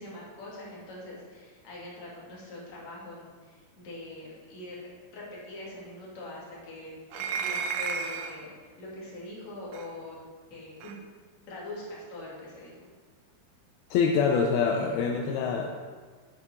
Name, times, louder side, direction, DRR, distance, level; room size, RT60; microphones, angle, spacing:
voice 1, 0.0-10.2 10.5-11.0 11.5-12.9, left 2 dB, 45° left, -5 dB, 3.3 m, -43 dB
sound 1, 7.1-8.4 9.7-9.9 10.8-11.0, right 6 dB, 75° right, 2.1 m, -32 dB
voice 2, 13.9-15.8, left 5 dB, 80° left, 1 dB, 2.4 m, -25 dB
9.2 x 8.4 x 4.4 m, 1.5 s
omnidirectional pair, 4.7 m